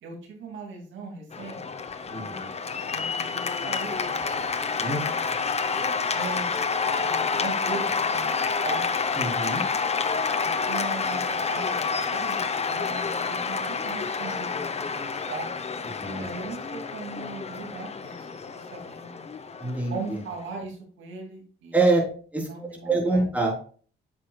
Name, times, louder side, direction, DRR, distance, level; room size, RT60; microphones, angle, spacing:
voice 1, 0.0-1.6 2.1-2.5 2.8-5.2 6.1-6.6 6.9-8.9 10.4-15.6 16.2-19.2 19.9-22.0 22.4-23.2, right 3 dB, 75° right, 0 dB, 2.3 m, -39 dB
Cheering / Applause, 1.3-20.6, left 5 dB, 30° left, 0.8 m, -29 dB
voice 2, 2.1-2.5 4.8-5.0 9.2-9.6 16.0-16.3 19.6-20.2 21.7-22.0 22.3-23.5, right 3 dB, 5° right, -3 dB, 3.6 m, -25 dB
8.8 x 7.3 x 2.3 m, 0.43 s
cardioid pair, 90°, 20 cm